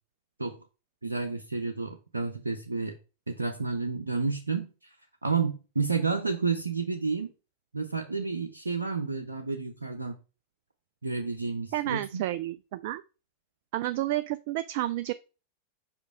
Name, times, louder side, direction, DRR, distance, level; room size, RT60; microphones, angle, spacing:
voice 1, 1.0-3.0 3.3-4.7 5.2-7.3 7.7-10.2 11.0-12.2, right 4 dB, 80° right, 2 dB, 0.7 m, -30 dB
voice 2, 11.7-13.0 13.7-15.1, right 15 dB, 50° right, 13 dB, 0.3 m, -30 dB
5.2 x 5.1 x 4.7 m, 0.32 s
figure-of-eight pair, 90°, 0 cm